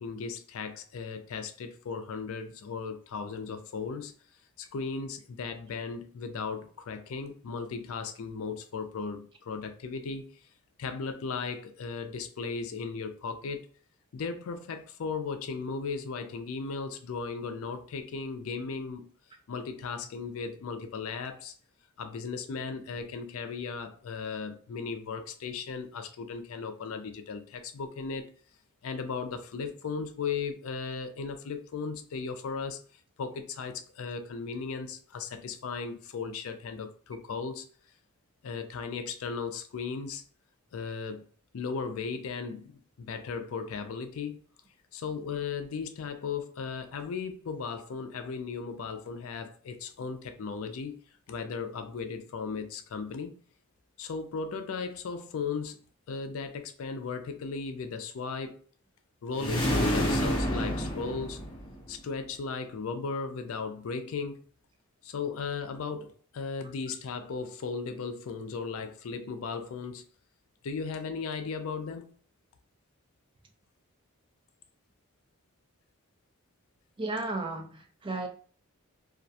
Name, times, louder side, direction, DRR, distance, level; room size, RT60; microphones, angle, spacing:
voice 1, 0.0-4.1 4.6-10.4 10.8-13.6 14.1-19.1 19.5-21.5 22.0-28.3 28.8-37.7 38.4-40.2 40.7-41.2 41.5-44.4 44.9-51.0 51.3-53.4 54.0-55.8 56.1-58.6 59.2-61.4 61.9-64.4 65.0-70.0 70.6-72.1, left 5 dB, 70° left, 0.4 m, -36 dB
sound 1, 59.3-61.9, equal, 20° left, 0.6 m, -28 dB
voice 2, 77.0-78.3, right 2 dB, 20° right, 0.3 m, -34 dB
2.4 x 2.1 x 2.6 m
head